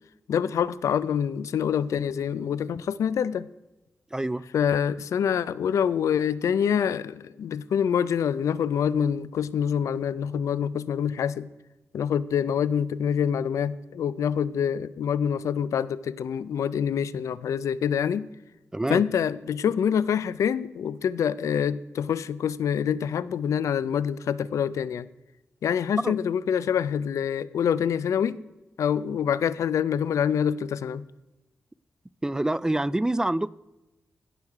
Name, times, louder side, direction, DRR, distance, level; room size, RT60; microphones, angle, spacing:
voice 1, 0.3-3.5 4.5-11.5 11.9-18.3 18.9-25.1 25.6-28.4 28.8-31.0, left 8 dB, 85° left, 18 dB, 0.4 m, -26 dB
voice 2, 4.1-4.5 18.7-19.0 26.0-26.1 32.2-33.5, right 1 dB, 10° right, 20 dB, 0.3 m, -26 dB
17.0 x 6.4 x 4.7 m, 1.0 s
cardioid pair, 85°, 5 cm